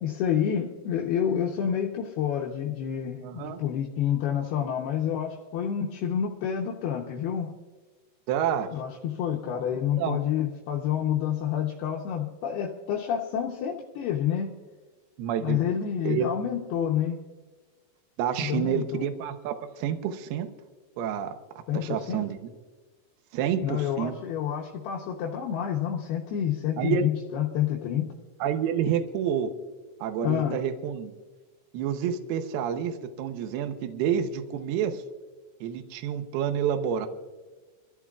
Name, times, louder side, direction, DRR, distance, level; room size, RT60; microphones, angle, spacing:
voice 1, 0.0-7.5 8.7-14.6 15.4-17.2 18.4-19.1 21.7-22.3 23.6-28.1 30.2-30.6, left 9 dB, 80° left, -1 dB, 2.3 m, -28 dB
voice 2, 3.2-3.6 8.3-8.7 10.0-10.2 15.2-15.6 16.0-16.3 18.2-20.5 21.0-22.5 23.3-24.2 26.8-27.1 28.4-29.5 30.0-31.2 31.7-35.0 35.6-37.1, right 8 dB, 85° right, 7 dB, 2.2 m, -29 dB
25.5 x 14.5 x 2.4 m, 1.3 s
omnidirectional pair, 5.9 m